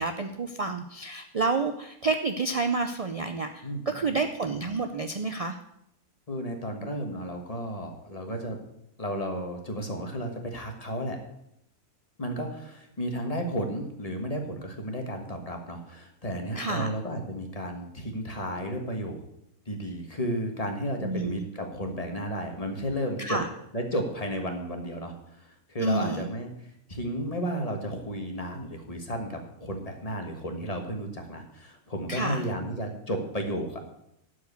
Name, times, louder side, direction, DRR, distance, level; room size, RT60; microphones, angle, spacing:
voice 1, 0.0-5.6 16.6-16.9 21.0-21.4 23.2-23.5 25.8-26.3 32.1-32.4, right 3 dB, 65° right, 6 dB, 0.3 m, -29 dB
voice 2, 3.6-4.2 6.3-8.6 9.0-11.2 12.2-19.2 19.7-23.4 23.7-33.9, equal, 25° left, 3 dB, 1.5 m, -33 dB
12.0 x 4.8 x 8.2 m, 0.79 s
omnidirectional pair, 1.5 m